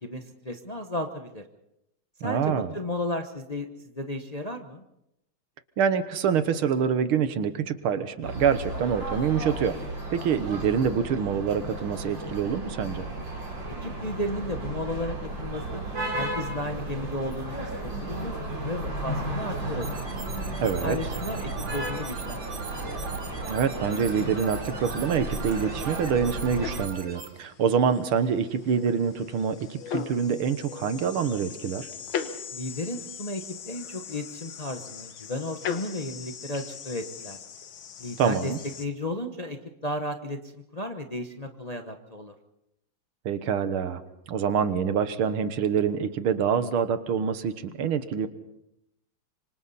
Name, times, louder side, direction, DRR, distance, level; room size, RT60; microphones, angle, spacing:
voice 1, 0.0-1.4 2.2-3.7 3.9-4.8 13.8-15.8 16.1-19.9 20.6-22.6 32.5-37.4 38.0-38.5 38.8-42.3, left 1 dB, 30° left, 5 dB, 0.8 m, -34 dB
voice 2, 2.2-2.7 5.8-9.8 10.1-13.1 20.6-21.0 23.5-31.9 38.2-38.6 43.3-44.0 44.3-48.3, right 7 dB, 90° right, 11 dB, 2.1 m, -26 dB
sound 1, 8.2-26.9, right 2 dB, 65° right, 4.8 m, -34 dB
sound 2, 19.8-27.3, right 5 dB, 45° right, 2.0 m, -42 dB
sound 3, 23.6-38.9, left 7 dB, 70° left, 2.0 m, -40 dB
26.0 x 25.0 x 4.2 m, 0.83 s
omnidirectional pair, 2.3 m